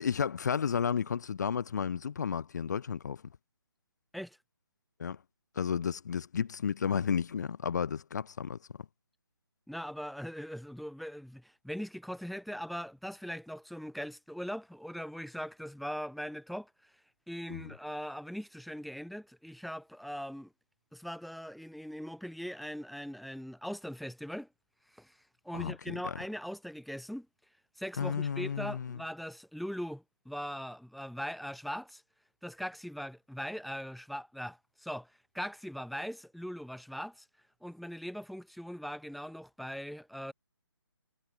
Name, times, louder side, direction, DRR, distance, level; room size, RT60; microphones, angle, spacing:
voice 1, 0.0-3.2 5.0-5.2 5.6-8.6 17.5-17.7 25.5-26.2 28.0-29.0, left 7 dB, 45° left, 0.7 m, -32 dB
voice 2, 9.7-16.7 17.3-20.5 20.9-24.5 24.9-25.1 25.4-27.3 27.8-32.0 32.4-35.1 35.3-37.3 37.6-40.3, equal, ahead, 0.5 m, -40 dB
hypercardioid pair, 165°, 14 cm